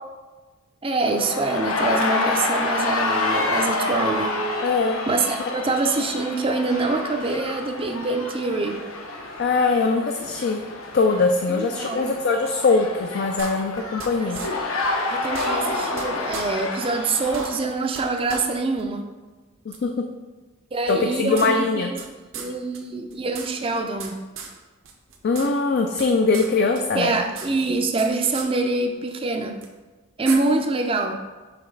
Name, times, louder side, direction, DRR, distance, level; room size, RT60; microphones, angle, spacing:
voice 1, 0.8-4.4 5.1-8.8 11.5-12.1 14.2-14.3 15.1-19.0 20.7-22.0 22.3-24.2 26.9-29.6 30.2-31.2, right 3 dB, 25° right, 5 dB, 0.4 m, -25 dB
sound 1, 1.1-17.6, left 2 dB, 75° left, 0.8 m, -28 dB
voice 2, 4.6-5.0 9.4-10.6 10.9-14.4 19.7-19.9 20.9-21.9 25.2-27.2, left 4 dB, 50° left, 4 dB, 0.3 m, -22 dB
sound 2, 13.4-14.1 14.3-14.5 14.8-14.9 15.2-16.0 16.3-16.4 16.8-16.9 17.2-18.0 18.3-18.4 18.8-18.9 19.7-19.8 20.9-22.1 22.3-22.5 22.7-22.8 23.1-24.1 24.4-24.5 24.8-25.5 25.7-26.5 26.7-28.1 28.3-28.5 29.6-29.7 30.3-30.4, right 6 dB, 65° right, 0.8 m, -35 dB
5.8 x 3.2 x 5.2 m, 1.3 s
head